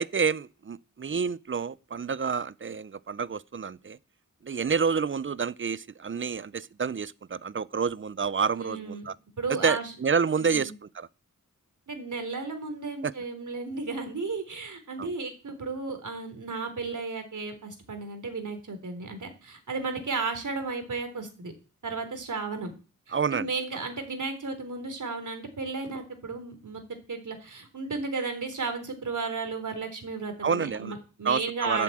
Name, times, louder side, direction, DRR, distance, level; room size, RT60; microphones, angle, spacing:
voice 1, 0.0-4.0 4.4-9.2 9.5-11.1 13.0-13.1 15.0-15.1 23.1-23.5 30.4-30.9 31.2-31.8, right 6 dB, 40° right, 0.6 m, -28 dB
voice 2, 8.6-9.1 9.4-9.9 10.4-10.7 11.9-21.5 21.8-22.7 23.1-26.8 27.1-31.8, right 4 dB, 65° right, 3.7 m, -34 dB
12.5 x 7.5 x 8.6 m
wide cardioid pair, 105°, 33 cm